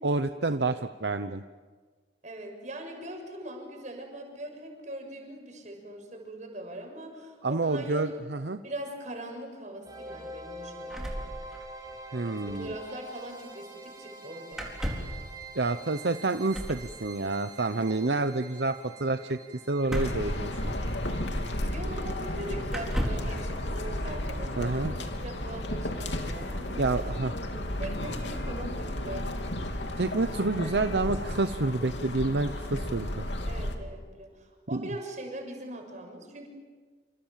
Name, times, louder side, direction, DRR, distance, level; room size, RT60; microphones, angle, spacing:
voice 1, 0.0-1.4 7.4-8.6 12.1-12.7 15.5-19.4 19.7-20.7 24.6-24.9 26.8-27.3 30.0-33.2 34.7-34.9, right 3 dB, 70° right, 9 dB, 0.9 m, -28 dB
voice 2, 2.2-8.1 8.6-11.3 12.2-14.7 21.6-26.8 27.4-29.8 33.4-36.5, right 1 dB, 45° right, 3 dB, 6.9 m, -41 dB
sound 1, 9.8-24.8, right 2 dB, 20° right, 5.2 m, -47 dB
sound 2, 10.9-12.0 12.2-12.3 12.5-12.7 14.5-15.2 16.5-16.9 19.8-21.0 21.9-22.0 22.7-23.4, equal, 5° right, 4.2 m, -34 dB
sound 3, 19.9-33.7, left 1 dB, 85° left, 3.0 m, -33 dB
28.5 x 27.5 x 7.6 m, 1.5 s
head